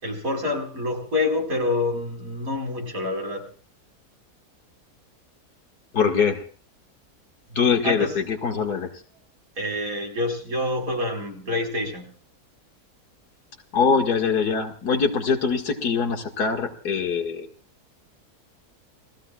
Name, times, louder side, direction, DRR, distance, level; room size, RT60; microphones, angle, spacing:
voice 1, 0.0-3.4 7.5-8.2 9.6-12.1, left 2 dB, 60° right, 2 dB, 5.2 m, -27 dB
voice 2, 5.9-6.4 7.6-8.9 13.7-17.5, left 5 dB, 75° left, 4 dB, 2.5 m, -23 dB
29.5 x 18.5 x 2.4 m, 0.40 s
omnidirectional pair, 1.7 m